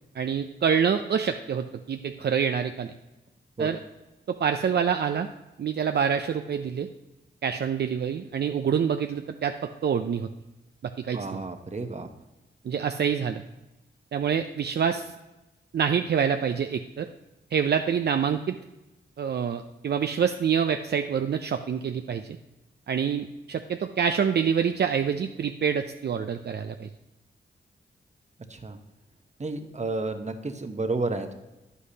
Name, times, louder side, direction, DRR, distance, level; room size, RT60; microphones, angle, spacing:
voice 1, 0.2-2.9 3.6-3.8 4.3-5.3 5.6-6.9 7.4-10.3 11.0-11.4 12.6-13.4 14.1-15.1 15.7-17.1 17.5-18.6 19.2-22.2 22.9-26.9, right 7 dB, 60° right, 7 dB, 0.4 m, -26 dB
voice 2, 11.1-12.1 28.5-28.8 29.4-31.3, right 3 dB, 35° right, 7 dB, 0.9 m, -31 dB
9.6 x 8.3 x 2.8 m, 1.0 s
cardioid pair, 60°, 20 cm